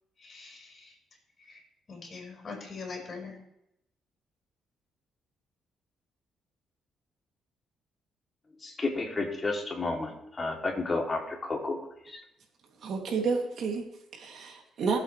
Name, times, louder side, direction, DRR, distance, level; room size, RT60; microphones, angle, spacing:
voice 1, 0.2-0.9 1.4-1.6 1.9-3.4, left 4 dB, 45° left, 1 dB, 5.8 m, -42 dB
voice 2, 8.6-11.8 12.0-12.2, left 3 dB, 30° left, -1 dB, 3.4 m, -31 dB
voice 3, 12.8-15.0, right 5 dB, 65° right, 0 dB, 3.1 m, -31 dB
19.5 x 8.5 x 3.5 m, 0.83 s
cardioid pair, 90°, 0 cm